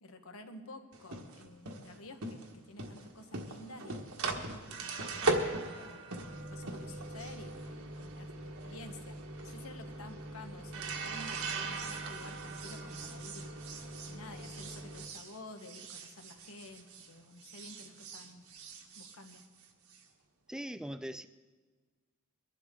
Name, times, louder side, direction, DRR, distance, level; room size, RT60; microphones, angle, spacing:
voice 1, 0.0-4.1 4.7-13.5 13.8-18.7 18.9-19.4, left 2 dB, 70° left, 1.3 m, -51 dB
sound 1, 0.9-17.1 17.4-20.0, right 2 dB, 70° right, 1.4 m, -40 dB
voice 2, 20.5-21.3, equal, 5° right, 0.4 m, -40 dB
22.5 x 11.5 x 3.8 m
head